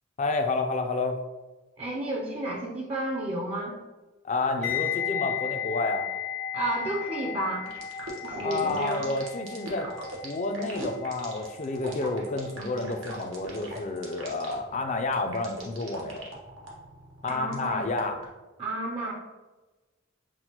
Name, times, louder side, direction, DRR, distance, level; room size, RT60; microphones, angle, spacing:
voice 1, 0.2-1.2 4.2-6.1 8.4-9.9 10.2-16.2 17.2-18.2, left 3 dB, 35° left, 6 dB, 0.4 m, -30 dB
voice 2, 1.8-3.7 6.5-7.7 8.2-9.1 17.2-17.9 18.6-19.1, right 1 dB, 30° right, -1 dB, 0.4 m, -31 dB
sound 1, 4.6-13.6 13.8-14.1, left 9 dB, 85° left, 1.4 m, -35 dB
sound 2, 7.7-18.2, right 2 dB, 85° right, 1.1 m, -41 dB
6.1 x 2.1 x 2.8 m, 1.2 s
head